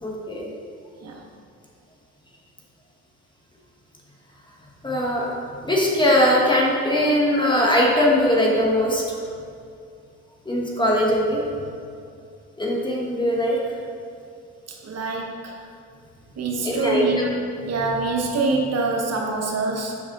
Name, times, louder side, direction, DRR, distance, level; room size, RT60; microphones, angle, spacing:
voice 1, 0.0-0.5 4.8-9.2 10.4-11.4 12.6-13.6 16.6-17.3, left 1 dB, 15° left, -3 dB, 1.4 m, -21 dB
voice 2, 14.7-15.6 16.4-17.3 17.6-20.0, right 3 dB, 55° right, 0 dB, 1.1 m, -25 dB
7.6 x 5.4 x 3.8 m, 2.5 s
cardioid pair, 90°, 30 cm